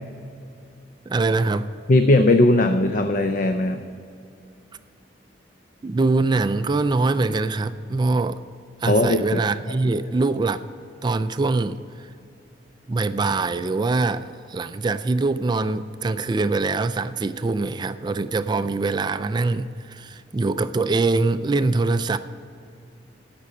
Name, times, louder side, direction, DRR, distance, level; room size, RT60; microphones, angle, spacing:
voice 1, 1.1-1.7 5.8-8.4 8.8-10.6 11.0-11.8 12.9-22.2, right 3 dB, 25° right, 11 dB, 0.3 m, -23 dB
voice 2, 1.9-3.8 8.9-9.4, left 2 dB, 45° left, 7 dB, 0.5 m, -18 dB
15.0 x 6.0 x 7.8 m, 2.5 s
head